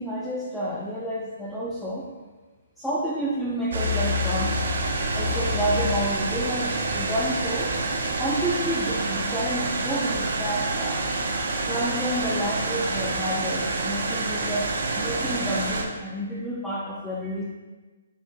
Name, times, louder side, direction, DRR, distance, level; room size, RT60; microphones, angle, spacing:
voice 1, 0.0-2.1 2.8-4.6 5.1-7.7 8.2-11.1 11.6-17.4, right 1 dB, ahead, -7 dB, 0.4 m, -29 dB
sound 1, 3.7-15.8, right 2 dB, 70° right, 0.5 m, -27 dB
3.8 x 2.5 x 2.7 m, 1.3 s
hypercardioid pair, 145°, 0 cm